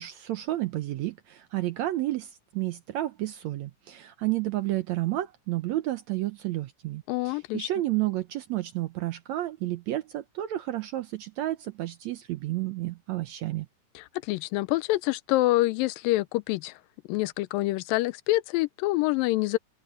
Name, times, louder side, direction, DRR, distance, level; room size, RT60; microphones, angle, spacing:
voice 1, 0.0-13.7, right 15 dB, 75° right, 1.7 m, -31 dB
voice 2, 7.1-7.7 14.0-16.8 17.1-19.6, left 18 dB, 85° left, 2.3 m, -26 dB
open air
omnidirectional pair, 3.9 m